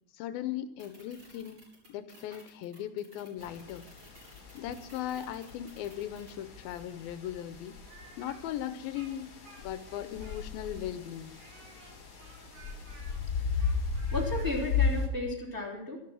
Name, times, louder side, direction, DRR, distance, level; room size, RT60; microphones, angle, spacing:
voice 1, 0.1-3.9 4.5-7.8 8.2-9.3 9.6-11.4, left 11 dB, 80° left, 12 dB, 2.4 m, -38 dB
sound 1, 0.8-6.3, equal, 35° right, 5.8 m, -55 dB
sound 2, 3.4-15.1, left 5 dB, 35° left, 2.5 m, -36 dB
Speech, 7.8-10.7 11.3-14.6, right 3 dB, 75° right, 4.5 m, -55 dB
voice 2, 13.4-16.0, left 1 dB, 5° right, -3 dB, 2.4 m, -35 dB
13.0 x 11.5 x 6.1 m, 0.87 s
omnidirectional pair, 4.3 m